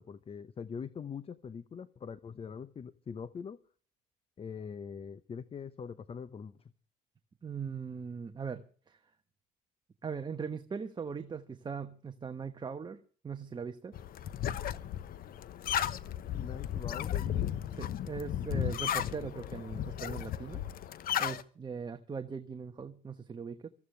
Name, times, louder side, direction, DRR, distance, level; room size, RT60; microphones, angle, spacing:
voice 1, 0.0-3.6 4.4-6.6 16.3-17.4, left 6 dB, 35° left, 0.8 m, -43 dB
voice 2, 7.4-8.6 8.9-9.0 10.0-13.0 13.2-13.9 17.8-20.6 21.2-23.7, right 6 dB, 25° right, 1.2 m, -40 dB
sound 1, 13.9-21.4, left 10 dB, 60° left, 1.0 m, -35 dB
24.5 x 14.5 x 3.3 m
cardioid pair, 110°, 17 cm